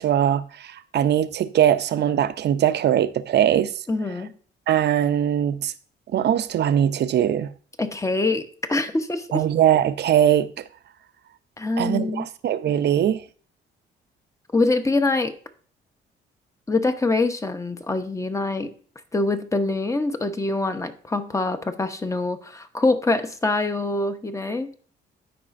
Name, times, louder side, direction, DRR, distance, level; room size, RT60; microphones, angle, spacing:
voice 1, 0.0-3.7 4.7-5.7 6.1-7.5 9.3-10.5 11.8-13.2, right 10 dB, 60° right, 0.6 m, -21 dB
voice 2, 3.9-4.4 7.8-9.4 11.6-12.3 14.5-15.3 16.7-18.7 19.1-24.7, left 2 dB, 15° left, 0.8 m, -24 dB
12.0 x 4.9 x 2.5 m
cardioid pair, 90°, 20 cm